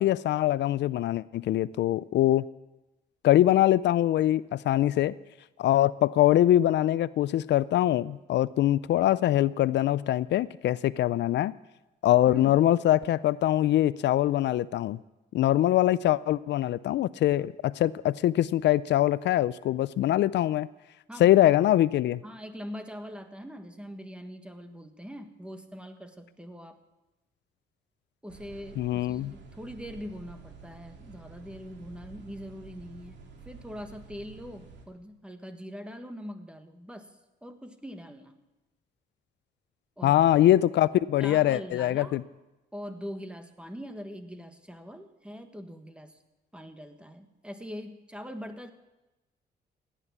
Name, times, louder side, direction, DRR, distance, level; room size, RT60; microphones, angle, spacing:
voice 1, 0.0-2.4 3.2-5.1 5.6-11.5 12.0-15.0 15.3-20.7 21.2-22.2 28.8-29.3 40.0-42.2, left 13 dB, 75° left, 18 dB, 0.4 m, -23 dB
voice 2, 12.3-12.6 21.1-21.4 22.2-26.8 28.2-33.2 33.4-37.1 37.4-38.4 40.0-40.3 41.2-42.2 42.7-46.2 46.5-48.7, equal, 5° right, 7 dB, 1.5 m, -42 dB
sound 1, 28.3-34.9, right 5 dB, 80° right, 2.4 m, -50 dB
16.5 x 10.0 x 7.3 m, 1.0 s
cardioid pair, 100°, 18 cm